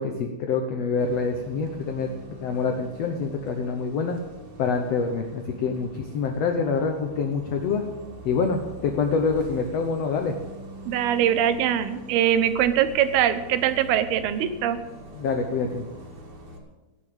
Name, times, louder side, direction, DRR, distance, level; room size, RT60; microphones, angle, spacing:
voice 1, 0.0-2.1 2.4-4.2 4.6-7.8 8.2-10.3 15.1-15.8, left 5 dB, 70° left, 4 dB, 1.6 m, -26 dB
Bus, 1.0-16.6, equal, 55° right, 3.4 m, -43 dB
voice 2, 10.9-14.8, right 10 dB, 85° right, 11 dB, 2.9 m, -22 dB
17.0 x 7.0 x 8.7 m, 1.2 s
omnidirectional pair, 4.4 m